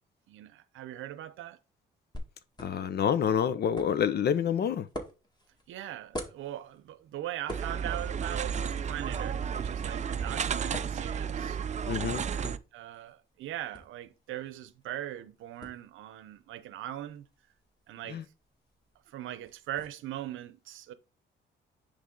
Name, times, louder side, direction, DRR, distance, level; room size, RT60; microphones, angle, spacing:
voice 1, 0.3-1.6 5.7-11.6 12.3-17.3 17.9-18.2 19.1-20.9, right 13 dB, 85° right, 0.8 m, -40 dB
sound 1, 2.1-19.9, equal, 20° left, 1.9 m, -48 dB
voice 2, 2.6-4.9 11.9-12.2 18.1-18.2, left 8 dB, 55° left, 0.7 m, -27 dB
sound 2, 7.5-12.6, right 7 dB, 35° right, 0.5 m, -32 dB
9.9 x 3.4 x 3.8 m
cardioid pair, 90°, 20 cm